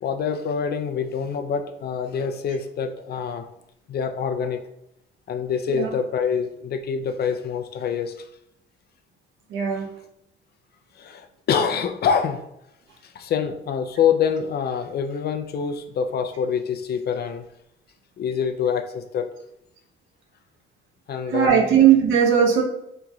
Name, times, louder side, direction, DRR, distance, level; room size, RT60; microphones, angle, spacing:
voice 1, 0.0-3.4 3.9-4.6 5.3-8.3 9.8-9.9 11.0-12.4 13.0-17.4 18.2-19.3 21.1-21.8, left 7 dB, 55° left, 7 dB, 0.5 m, -26 dB
voice 2, 9.5-9.9 21.3-22.6, right 8 dB, 80° right, 1 dB, 0.8 m, -18 dB
3.9 x 3.0 x 2.4 m, 0.81 s
cardioid pair, 90°, 20 cm